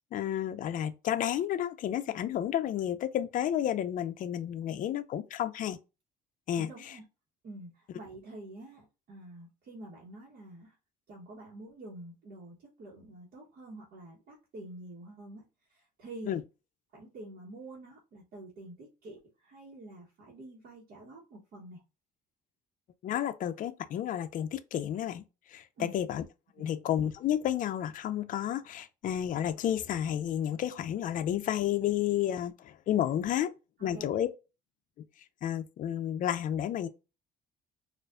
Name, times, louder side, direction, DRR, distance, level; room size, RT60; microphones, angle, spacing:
voice 1, 0.1-5.8 6.5-7.0 16.3-16.4 23.0-25.2 25.5-26.2 26.6-33.5 33.8-34.3 35.4-36.9, left 10 dB, 50° left, 0.4 m, -31 dB
voice 2, 6.5-7.0 7.4-10.8 11.1-15.4 15.7-16.4 16.9-21.8 25.8-25.9 26.6-26.7 33.8-34.2, right 2 dB, 60° right, 1.2 m, -47 dB
4.3 x 2.5 x 2.4 m
cardioid pair, 110°, 17 cm